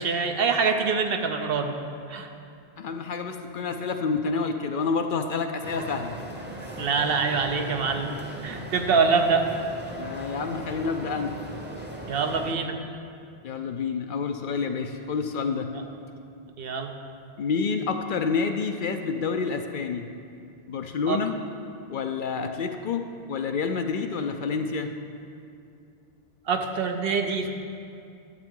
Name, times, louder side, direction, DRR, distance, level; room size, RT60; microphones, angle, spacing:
voice 1, 0.0-1.8 2.1-2.3 6.8-8.2 8.4-9.5 12.1-12.8 15.7-15.8 16.6-16.9 21.1-21.2 26.5-27.5, right 5 dB, 65° right, 5 dB, 0.9 m, -25 dB
voice 2, 2.8-6.1 9.9-11.4 13.4-15.7 17.4-20.1 20.7-21.4 21.9-24.9, left 5 dB, 60° left, 6 dB, 0.6 m, -28 dB
sound 1, 5.6-12.5, right 1 dB, 10° right, 0.8 m, -38 dB
12.0 x 8.0 x 3.7 m, 2.4 s
omnidirectional pair, 1.1 m